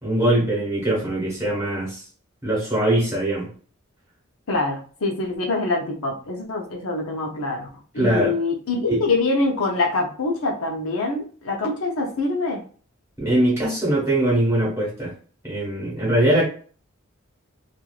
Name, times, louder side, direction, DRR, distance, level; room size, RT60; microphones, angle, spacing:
voice 1, 0.0-2.0 2.4-3.5 7.9-8.3 8.9-9.0 13.2-15.1 15.4-16.5, right 1 dB, 15° right, -6 dB, 1.5 m, -21 dB
voice 2, 4.5-7.7 7.9-12.6, left 3 dB, 80° left, 0 dB, 0.7 m, -25 dB
3.1 x 2.5 x 2.4 m, 0.41 s
head